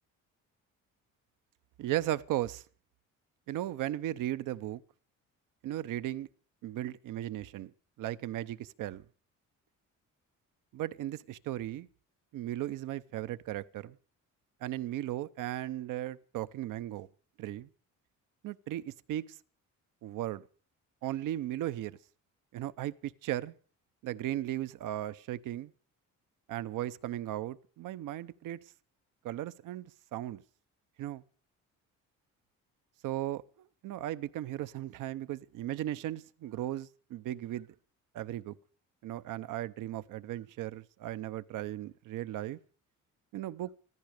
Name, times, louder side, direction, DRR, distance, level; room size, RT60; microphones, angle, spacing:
voice 1, 1.8-2.6 3.5-4.8 5.6-6.3 6.6-7.7 8.0-9.0 10.7-11.9 12.3-14.0 14.6-17.1 17.4-17.7 18.4-19.4 20.0-20.5 21.0-22.0 22.5-23.5 24.0-25.7 26.5-28.6 29.2-30.4 31.0-31.2 33.0-37.7 38.1-38.6 39.0-42.6 43.3-43.7, right 13 dB, 75° right, 0.8 m, -36 dB
15.0 x 14.0 x 6.5 m
cardioid pair, 125°, 32 cm